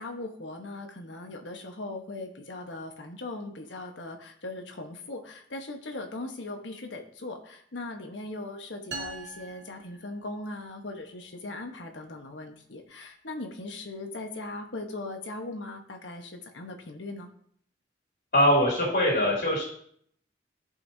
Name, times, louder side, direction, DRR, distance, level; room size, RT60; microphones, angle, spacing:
voice 1, 0.0-17.3, left 2 dB, 85° left, 4 dB, 1.2 m, -39 dB
sound 1, 8.9-10.7, right 3 dB, 75° right, 1.1 m, -42 dB
voice 2, 18.3-19.6, equal, 55° left, -4 dB, 2.8 m, -22 dB
14.0 x 5.6 x 2.8 m, 0.63 s
head